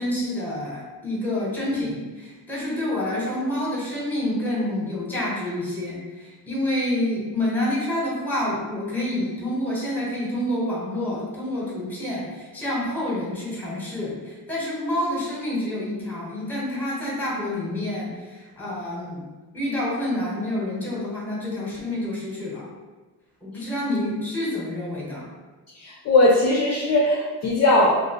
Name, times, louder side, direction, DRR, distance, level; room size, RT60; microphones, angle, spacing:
voice 1, 0.0-19.2 19.5-22.7 23.4-25.3, left 1 dB, 5° left, -6 dB, 0.9 m, -28 dB
voice 2, 25.8-28.0, left 2 dB, 40° left, -3 dB, 0.4 m, -19 dB
2.7 x 2.4 x 2.8 m, 1.3 s
cardioid pair, 130°, 40 cm